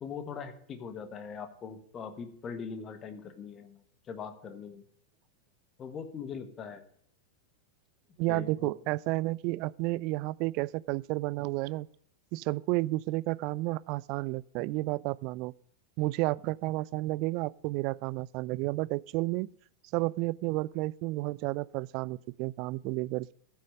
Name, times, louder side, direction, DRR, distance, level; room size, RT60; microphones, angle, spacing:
voice 1, 0.0-3.8 4.1-4.8 5.8-6.8 8.3-8.7, left 6 dB, 25° left, 1.4 m, -41 dB
voice 2, 8.2-11.9 12.3-15.5 16.0-19.5 19.9-23.3, right 20 dB, 45° right, 0.3 m, -31 dB
14.5 x 6.3 x 5.0 m
figure-of-eight pair, 90°, 0 cm